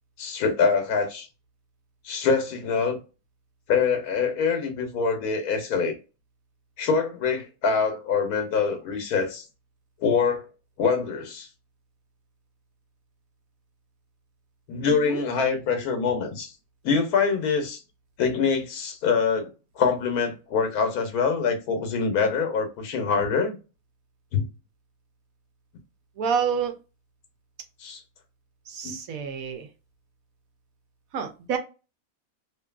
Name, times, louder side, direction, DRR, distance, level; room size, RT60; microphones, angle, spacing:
voice 1, 0.2-1.3 2.0-3.0 3.7-6.0 6.8-9.4 10.0-10.5 10.8-11.5 14.7-16.5 16.8-17.8 18.2-19.5 19.8-23.6 24.3-24.5 27.8-28.0 28.8-28.9, left 5 dB, 80° left, 1.3 m, -24 dB
voice 2, 14.9-15.2 26.2-26.8 28.7-29.7 31.1-31.6, right 6 dB, 70° right, 1.1 m, -28 dB
2.9 x 2.6 x 2.3 m
omnidirectional pair, 1.6 m